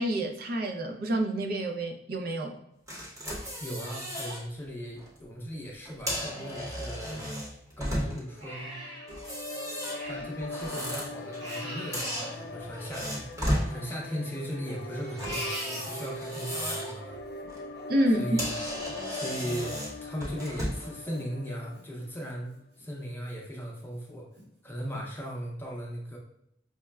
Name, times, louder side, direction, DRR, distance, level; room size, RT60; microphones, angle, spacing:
voice 1, 0.0-2.5 17.9-18.4, right 1 dB, 55° right, 5 dB, 0.5 m, -28 dB
sound 1, 2.9-4.4 4.8-5.1 5.8-8.4 9.1-11.6 11.9-13.7 15.2-17.0 17.4-17.6 18.1-18.2 18.4-20.9, equal, 20° right, 0.8 m, -35 dB
voice 2, 3.6-7.2 7.8-8.9 10.0-17.2 18.2-18.5 19.1-19.8 20.0-22.5 22.8-24.3 24.6-26.2, equal, 10° left, -3 dB, 0.5 m, -38 dB
Crying sobbing, 6.0-7.7 8.1-10.5 10.8-13.2 13.7-16.5 16.9-22.3 22.8-22.9 23.3-23.9 24.4-24.5 24.9-25.0, equal, 75° right, 1.1 m, -44 dB
sound 2, 8.7-22.1, left 2 dB, 60° left, 0.3 m, -42 dB
5.6 x 2.1 x 2.2 m, 0.79 s
head